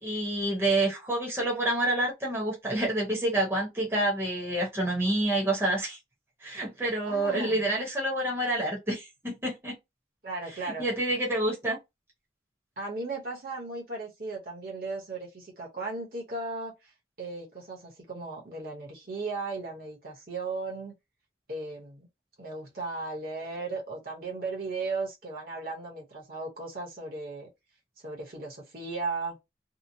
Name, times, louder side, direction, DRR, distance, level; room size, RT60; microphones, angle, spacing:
voice 1, 0.0-6.0 6.4-9.8 10.6-11.8, right 1 dB, 15° right, 0.8 m, -28 dB
voice 2, 7.0-7.6 10.2-10.9 12.8-16.9 17.2-20.9 21.5-22.1 22.4-27.5 28.0-29.4, right 3 dB, 50° right, 0.9 m, -36 dB
2.8 x 2.0 x 2.6 m
head